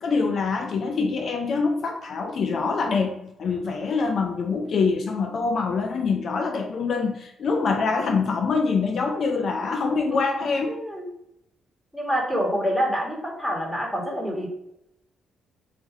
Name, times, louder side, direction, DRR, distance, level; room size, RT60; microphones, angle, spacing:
voice 1, 0.0-10.8, left 4 dB, 55° left, 4 dB, 0.5 m, -25 dB
voice 2, 10.7-11.1 11.9-14.5, equal, ahead, -1 dB, 1.4 m, -27 dB
3.5 x 2.6 x 4.6 m, 0.82 s
cardioid pair, 90°, 0 cm